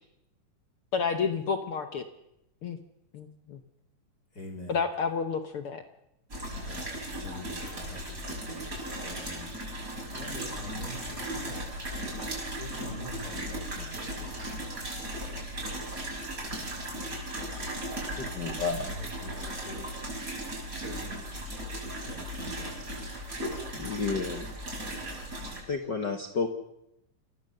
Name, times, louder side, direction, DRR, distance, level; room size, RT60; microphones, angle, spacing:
voice 1, 0.9-2.0 2.6-2.8 3.1-3.6 4.7-5.8, left 5 dB, 70° left, 1.3 m, -30 dB
voice 2, 4.3-4.8 6.5-8.7 9.0-9.5 10.1-11.7 12.6-15.3 18.7-19.9 20.7-21.3 21.8-22.8, left 1 dB, 25° left, 4.2 m, -45 dB
sound 1, 6.3-25.6, right 1 dB, 25° right, 6.1 m, -37 dB
voice 3, 18.2-18.8 23.7-24.5 25.7-26.5, left 5 dB, 50° left, 1.3 m, -31 dB
27.5 x 17.5 x 6.7 m
omnidirectional pair, 3.9 m